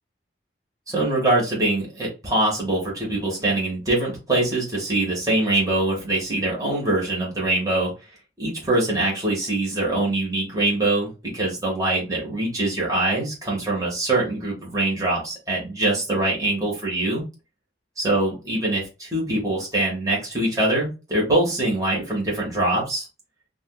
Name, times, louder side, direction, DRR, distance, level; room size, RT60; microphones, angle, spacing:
voice 1, 0.9-7.9 8.4-17.2 18.0-23.1, right 2 dB, 20° right, -5 dB, 1.5 m, -23 dB
4.9 x 2.5 x 2.2 m, 0.29 s
head